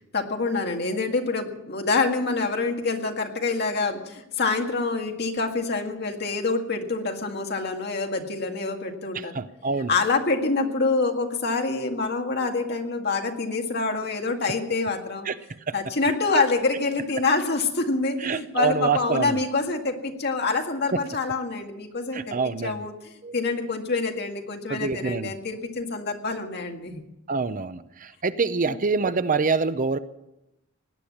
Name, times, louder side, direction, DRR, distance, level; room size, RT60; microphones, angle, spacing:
voice 1, 0.1-9.3 9.9-15.3 15.7-22.3 22.6-27.0 28.7-28.8, left 3 dB, 55° left, 3 dB, 1.9 m, -26 dB
voice 2, 9.1-9.9 15.3-15.4 15.7-15.8 18.2-19.4 22.1-22.8 23.2-23.3 24.7-25.3 27.3-30.0, right 4 dB, 40° right, 13 dB, 0.6 m, -26 dB
18.0 x 10.5 x 7.2 m, 0.89 s
head